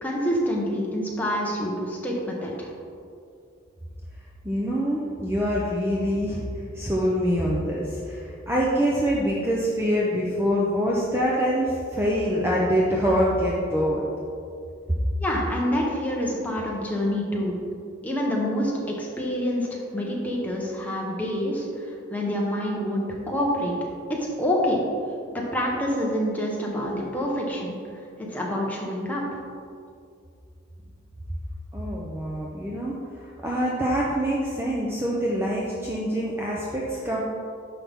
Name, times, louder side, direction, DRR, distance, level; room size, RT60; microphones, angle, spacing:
voice 1, 0.0-2.7 15.2-17.6 18.0-23.7 24.1-24.8 25.3-27.7 28.2-29.4, equal, 10° left, -3 dB, 1.2 m, -27 dB
voice 2, 4.4-6.5 6.7-14.0 31.7-37.2, equal, 10° right, -4 dB, 0.7 m, -25 dB
10.0 x 5.9 x 3.7 m, 2.4 s
head